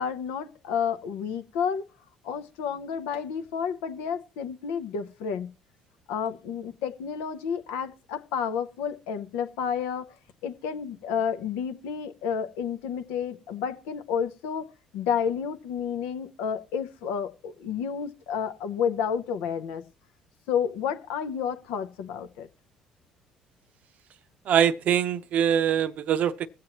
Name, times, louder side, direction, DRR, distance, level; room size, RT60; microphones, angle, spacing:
voice 1, 0.0-1.9 2.2-5.5 6.1-10.1 10.4-19.8 20.5-22.5, left 7 dB, 80° left, 0.6 m, -30 dB
voice 2, 24.5-26.5, right 9 dB, 60° right, 0.6 m, -23 dB
22.0 x 7.6 x 2.9 m
hypercardioid pair, 60°, 3 cm